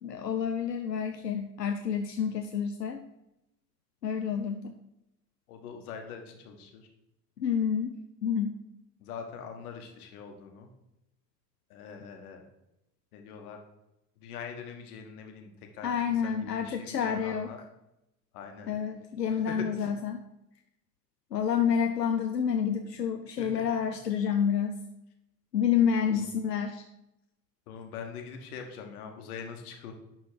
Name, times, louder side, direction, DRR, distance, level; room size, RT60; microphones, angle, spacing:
voice 1, 0.0-3.0 4.0-4.7 7.4-8.6 15.8-17.5 18.7-20.2 21.3-24.8 25.5-26.8, left 7 dB, 90° left, 6 dB, 0.5 m, -29 dB
voice 2, 5.5-6.9 9.0-10.7 11.7-12.4 13.1-13.6 14.2-17.6 18.3-18.7 19.5-19.9 23.4-23.6 26.1-26.3 27.7-29.9, left 6 dB, 65° left, 4 dB, 1.5 m, -43 dB
11.0 x 4.0 x 4.8 m, 0.89 s
figure-of-eight pair, 65°, 48 cm